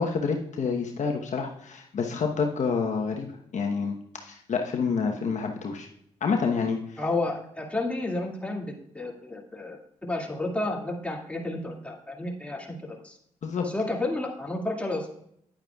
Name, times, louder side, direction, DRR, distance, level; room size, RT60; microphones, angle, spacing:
voice 1, 0.0-3.3 3.5-5.9 6.2-7.0 13.4-13.7, left 5 dB, 65° left, 2 dB, 1.0 m, -28 dB
voice 2, 7.0-13.2 13.7-15.1, left 2 dB, 10° left, -1 dB, 2.2 m, -31 dB
10.5 x 8.8 x 2.3 m, 0.70 s
cardioid pair, 60°, 13 cm